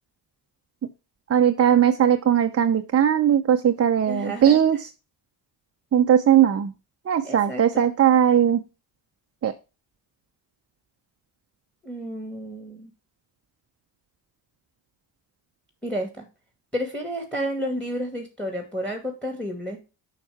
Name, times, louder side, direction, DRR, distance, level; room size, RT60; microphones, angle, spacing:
voice 1, 1.3-4.9 5.9-6.7 7.1-8.6 9.4-9.5, right 9 dB, 30° right, 7 dB, 0.6 m, -19 dB
voice 2, 4.1-4.6 7.2-7.9 11.8-12.9 15.8-16.3 16.7-19.8, equal, ahead, 4 dB, 2.1 m, -31 dB
6.9 x 5.7 x 3.5 m, 0.29 s
hypercardioid pair, 55°, 49 cm